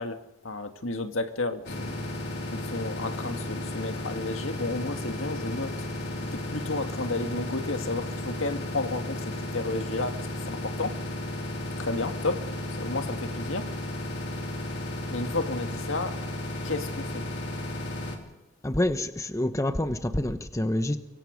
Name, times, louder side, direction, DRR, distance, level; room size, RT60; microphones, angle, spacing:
voice 1, 0.0-2.1 2.5-5.8 6.3-10.9 11.8-13.7 15.1-16.2 16.6-17.3, left 2 dB, 75° left, 1.9 m, -32 dB
sound 1, 1.6-18.2, left 1 dB, 55° left, 4.5 m, -34 dB
voice 2, 18.6-21.0, left 1 dB, 15° left, 1.1 m, -27 dB
24.5 x 24.0 x 5.2 m
head